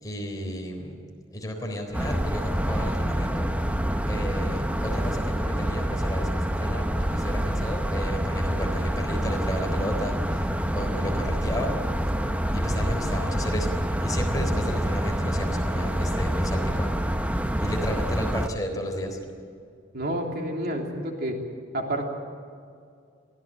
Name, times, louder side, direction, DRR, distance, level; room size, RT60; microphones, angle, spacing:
voice 1, 0.0-1.0 1.3-3.5 4.1-11.8 12.5-16.9 17.6-19.2, equal, 20° left, 2 dB, 3.9 m, -33 dB
sound 1, 1.9-18.5, equal, 5° right, 0.8 m, -27 dB
voice 2, 19.9-21.3 21.7-22.0, right 1 dB, 55° right, 1 dB, 3.3 m, -29 dB
23.5 x 16.0 x 9.0 m, 2.3 s
head